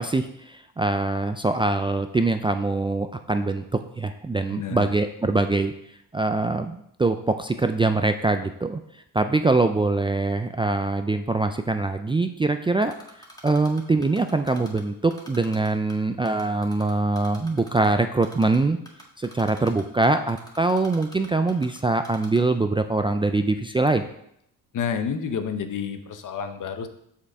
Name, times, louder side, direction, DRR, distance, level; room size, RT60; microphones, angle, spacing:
voice 1, 0.0-5.7 6.1-8.8 9.1-12.9 13.4-18.8 19.2-24.0, right 3 dB, 15° right, 7 dB, 0.4 m, -23 dB
voice 2, 4.5-4.9 24.7-26.9, left 7 dB, 55° left, 9 dB, 0.9 m, -29 dB
Typing, 12.8-14.8 15.1-15.9 16.3-17.9 18.2-18.6 18.9-21.8 22.0-22.4, left 1 dB, 10° left, 1.7 m, -45 dB
6.5 x 5.6 x 4.7 m, 0.74 s
cardioid pair, 80°, 37 cm